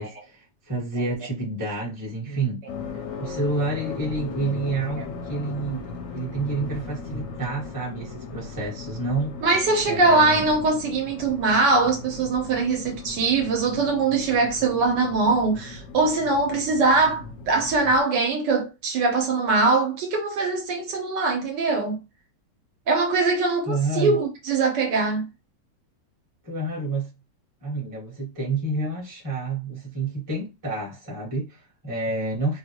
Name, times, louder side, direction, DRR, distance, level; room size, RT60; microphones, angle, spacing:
voice 1, 0.0-2.6 3.2-9.4 9.9-10.4 23.7-24.2 26.4-27.1 27.6-32.6, right 2 dB, 15° right, 1.0 m, -29 dB
sound 1, 2.7-18.0, left 4 dB, 65° left, 0.8 m, -38 dB
voice 2, 9.4-22.0 22.9-25.2, right 3 dB, 70° right, 1.4 m, -22 dB
3.3 x 2.4 x 2.9 m
omnidirectional pair, 2.0 m